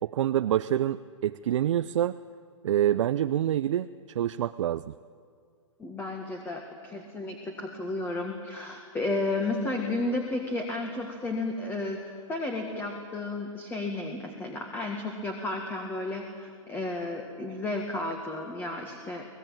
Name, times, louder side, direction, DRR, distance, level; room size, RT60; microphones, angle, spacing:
voice 1, 0.0-2.2 2.6-4.9, right 11 dB, 65° right, 11 dB, 0.5 m, -27 dB
voice 2, 5.8-12.0 12.3-19.3, left 2 dB, 10° left, 3 dB, 1.8 m, -33 dB
24.5 x 19.0 x 9.0 m, 2.2 s
hypercardioid pair, 140°, 17 cm